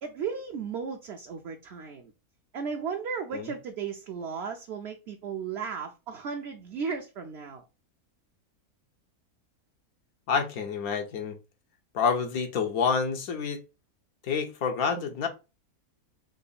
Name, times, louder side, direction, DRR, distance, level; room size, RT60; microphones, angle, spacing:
voice 1, 0.0-2.1 2.5-7.6, right 6 dB, 60° right, 0.7 m, -35 dB
voice 2, 10.3-11.4 11.9-13.6 14.2-15.3, left 6 dB, 85° left, 1.3 m, -28 dB
3.8 x 3.0 x 4.0 m
omnidirectional pair, 1.5 m